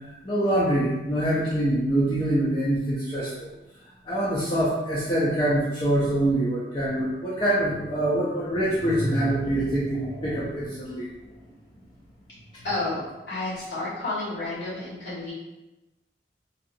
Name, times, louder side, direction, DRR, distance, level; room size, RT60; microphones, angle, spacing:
voice 1, 0.2-3.5 4.0-11.1 12.5-12.6, right 1 dB, 30° left, -8 dB, 0.5 m, -25 dB
voice 2, 12.6-15.3, left 2 dB, 80° left, -9 dB, 1.4 m, -31 dB
2.7 x 2.4 x 2.5 m, 1.0 s
head